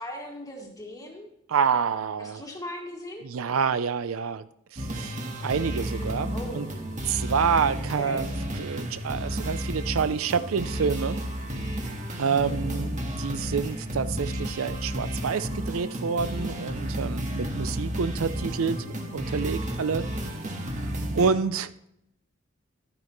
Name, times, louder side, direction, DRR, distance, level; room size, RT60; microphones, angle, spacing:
voice 1, 0.0-1.3 2.2-3.3 6.3-6.8 7.9-8.3 12.5-12.8, left 1 dB, 15° left, 1 dB, 1.9 m, -39 dB
voice 2, 1.5-2.4 3.2-4.4 4.7-5.2 5.4-6.7 7.0-8.3 8.6-11.2 12.2-12.9 13.2-18.8 19.1-20.1 21.1-21.7, right 6 dB, 90° right, 14 dB, 0.5 m, -27 dB
sound 1, 4.8-21.3, equal, 40° right, 1.6 m, -32 dB
12.0 x 9.7 x 3.1 m, 0.78 s
head